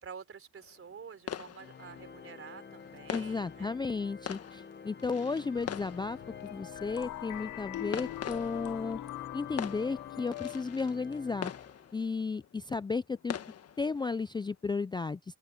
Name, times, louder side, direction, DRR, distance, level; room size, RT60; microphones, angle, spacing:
voice 1, 0.0-3.8, right 6 dB, 45° right, 3.8 m, -49 dB
sound 1, 0.6-14.7, left 9 dB, 55° left, 1.5 m, -45 dB
Organ, 1.6-12.2, left 6 dB, 35° left, 1.2 m, -49 dB
voice 2, 3.1-9.0 9.3-11.5 11.9-13.4 13.8-15.4, left 4 dB, 15° left, 0.4 m, -34 dB
sound 2, 5.6-10.6, left 15 dB, 80° left, 0.7 m, -42 dB
open air
cardioid pair, 90°, 30 cm